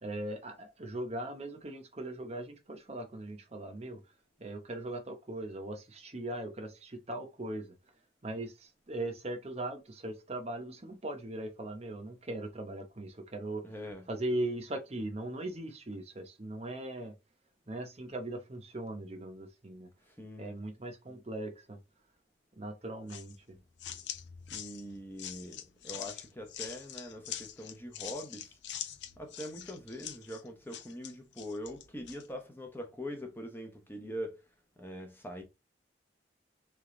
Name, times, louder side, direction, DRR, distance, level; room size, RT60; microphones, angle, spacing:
voice 1, 0.0-4.0 4.4-7.7 8.2-13.6 14.1-17.1 17.7-19.9 20.4-21.8 22.6-23.6, right 1 dB, 35° right, 0.8 m, -39 dB
voice 2, 13.6-14.0 20.1-20.5 24.5-28.6 29.2-34.4 34.8-35.4, equal, 10° left, 0.8 m, -43 dB
sound 1, 23.1-32.3, left 10 dB, 70° left, 0.5 m, -44 dB
3.5 x 3.4 x 3.7 m
head